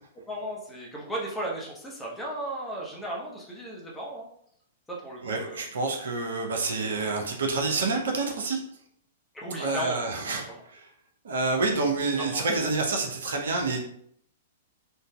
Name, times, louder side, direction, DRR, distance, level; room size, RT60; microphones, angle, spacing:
voice 1, 0.3-4.3 4.9-5.7 9.3-10.0 10.5-10.6 12.2-12.7, right 1 dB, 10° left, -3 dB, 0.8 m, -35 dB
voice 2, 5.2-8.6 9.5-10.9 11.2-13.8, right 3 dB, 65° right, 2 dB, 0.5 m, -28 dB
3.8 x 2.2 x 2.2 m, 0.67 s
figure-of-eight pair, 105°, 0 cm